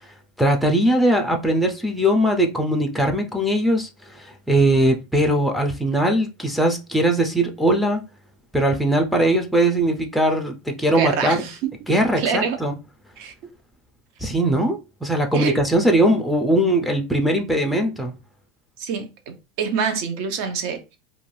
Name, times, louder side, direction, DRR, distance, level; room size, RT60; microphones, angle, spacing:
voice 1, 0.4-8.0 8.5-11.4 11.9-12.8 14.2-18.1, right 1 dB, ahead, 0.4 m, -20 dB
voice 2, 10.9-11.7 12.2-12.6 13.2-13.3 15.3-15.6 18.8-21.0, right 6 dB, 60° right, 0.6 m, -26 dB
2.5 x 2.3 x 3.1 m
supercardioid pair, 145°, 3 cm